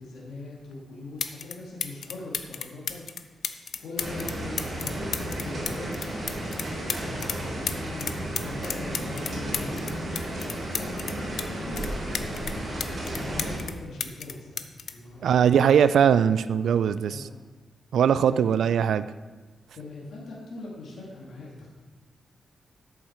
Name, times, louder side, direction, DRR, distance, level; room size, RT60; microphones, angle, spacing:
voice 1, 0.0-3.0 3.8-8.1 8.4-10.2 10.7-12.0 13.1-14.6 14.9-15.8 17.1-17.3 18.2-18.6 19.7-21.7, left 2 dB, 90° left, -4 dB, 2.2 m, -41 dB
sound 1, 0.7-0.8 1.2-1.5 1.8-7.4 7.7-11.5 11.8-13.7 14.0-15.8 16.8-17.0, left 7 dB, 70° left, 0.6 m, -33 dB
sound 2, 4.0-13.6, right 1 dB, 35° right, 3.8 m, -33 dB
voice 2, 15.2-17.3 17.9-19.1, right 8 dB, 85° right, 14 dB, 0.3 m, -21 dB
13.0 x 7.3 x 4.4 m, 1.4 s
wide cardioid pair, 160°, 0 cm